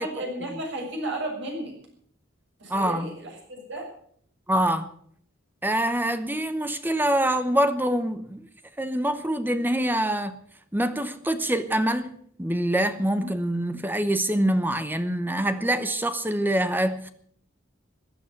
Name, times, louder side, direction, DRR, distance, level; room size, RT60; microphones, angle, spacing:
voice 1, 0.0-1.7 2.6-3.9, right 1 dB, 60° right, 7.0 m, -33 dB
voice 2, 2.7-3.1 4.5-4.9 5.6-8.5 8.8-10.4 10.7-12.1 12.4-17.1, right 1 dB, 10° right, 0.9 m, -25 dB
15.5 x 12.0 x 7.2 m
head